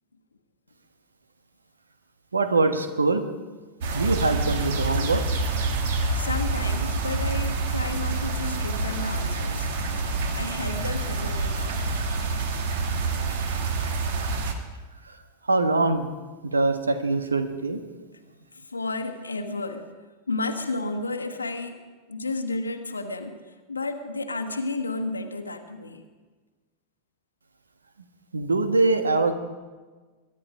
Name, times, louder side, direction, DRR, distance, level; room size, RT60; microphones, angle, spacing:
voice 1, 2.3-3.2 3.9-5.2 15.5-16.1 16.4-17.8 28.3-29.3, right 3 dB, 75° right, 9 dB, 1.3 m, -23 dB
sound 1, 3.8-14.5, right 3 dB, 55° right, 1.7 m, -27 dB
voice 2, 6.1-11.8 18.5-19.9 20.3-21.8 22.1-26.0, left 3 dB, 80° left, 5 dB, 1.3 m, -32 dB
22.0 x 11.5 x 5.0 m, 1.3 s
figure-of-eight pair, 90°, 0 cm